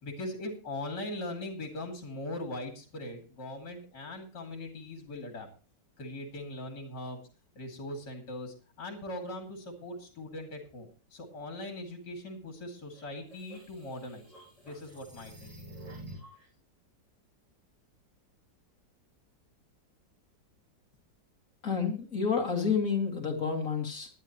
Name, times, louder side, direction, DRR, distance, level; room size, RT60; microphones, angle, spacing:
voice 1, 0.0-5.5 6.0-7.2 7.6-14.3 14.6-15.7, left 1 dB, 65° left, 3 dB, 3.1 m, -40 dB
sound 1, 12.9-16.4, right 1 dB, 20° right, 7.7 m, -49 dB
voice 2, 21.6-24.1, left 5 dB, 45° left, 3 dB, 2.5 m, -29 dB
19.0 x 11.0 x 3.0 m, 0.35 s
omnidirectional pair, 2.0 m